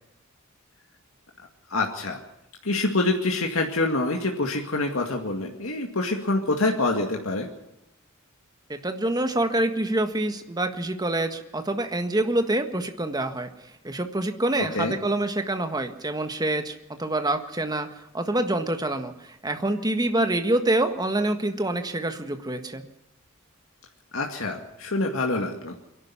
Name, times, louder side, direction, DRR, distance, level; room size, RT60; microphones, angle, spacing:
voice 1, 1.7-2.2 2.6-7.5 14.6-15.0 24.1-25.8, left 2 dB, 75° left, 2 dB, 2.1 m, -26 dB
voice 2, 8.8-13.5 13.8-17.9 18.1-19.1 19.4-22.8, right 1 dB, 20° right, 7 dB, 1.7 m, -26 dB
23.5 x 11.5 x 9.9 m, 0.88 s
head